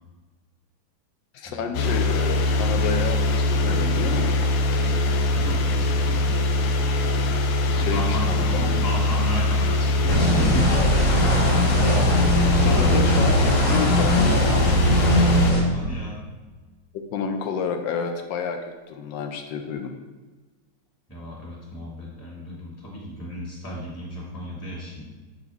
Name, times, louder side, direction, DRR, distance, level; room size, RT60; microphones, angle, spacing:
voice 1, 1.3-4.3 7.7-8.8 11.3-11.6 12.1-14.7 17.1-19.9, left 6 dB, 75° left, 5 dB, 1.2 m, -30 dB
sound 1, 1.7-15.5, left 2 dB, 90° left, 1.5 m, -22 dB
voice 2, 5.3-6.4 7.7-10.7 15.7-16.2 21.1-25.0, equal, 10° left, -5 dB, 1.7 m, -33 dB
sound 2, 10.1-15.6, equal, 45° left, 1.3 m, -20 dB
6.9 x 5.2 x 3.5 m, 1.3 s
omnidirectional pair, 2.2 m